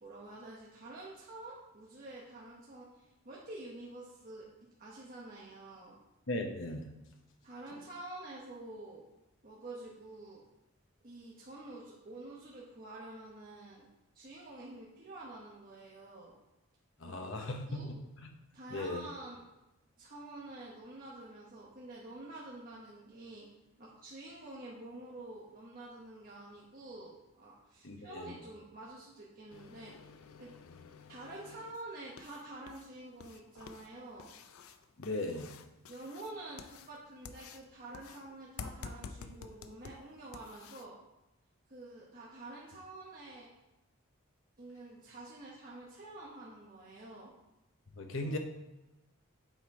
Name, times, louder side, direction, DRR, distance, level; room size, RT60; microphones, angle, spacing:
voice 1, 0.0-4.5 4.8-6.0 7.4-9.1 9.4-10.4 11.0-13.9 14.1-16.3 17.0-17.9 18.5-19.4 20.0-23.5 23.8-29.9 30.4-30.5 31.1-34.3 35.9-41.0 41.7-43.5 44.6-47.3 48.2-48.4, right 2 dB, 40° right, -5 dB, 1.1 m, -48 dB
voice 2, 6.3-6.9 17.0-18.3 18.7-19.1 27.8-28.3 35.0-35.5 47.9-48.4, left 2 dB, 65° left, 4 dB, 1.0 m, -38 dB
sound 1, 29.5-40.9, left 5 dB, 90° left, 0.5 m, -51 dB
7.8 x 4.5 x 4.7 m, 0.95 s
head